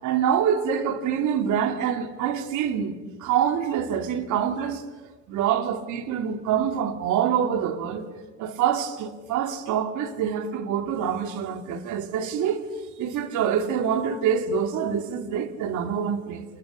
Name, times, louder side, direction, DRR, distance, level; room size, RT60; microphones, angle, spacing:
voice 1, 0.0-2.9 3.2-4.8 5.3-8.1 8.4-12.6 13.0-16.5, right 8 dB, 65° right, 3.0 m, -25 dB
28.0 x 28.0 x 6.7 m
cardioid pair, 135°, 32 cm